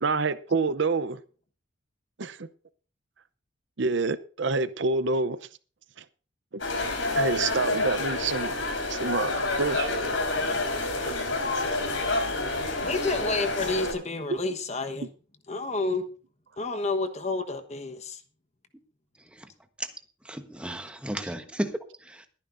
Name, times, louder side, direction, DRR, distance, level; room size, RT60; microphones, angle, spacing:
voice 1, 0.0-1.2 2.2-2.5 3.8-5.4 7.2-8.6 8.9-9.9 14.3-14.4, right 3 dB, 60° right, 0.7 m, -27 dB
sound 1, 6.6-13.9, left 2 dB, 75° left, 4.2 m, -28 dB
voice 2, 12.8-15.1 15.5-16.1 16.6-18.2, left 3 dB, 35° left, 1.2 m, -30 dB
voice 3, 20.2-22.3, right 1 dB, 5° right, 1.1 m, -34 dB
22.5 x 10.0 x 2.6 m
head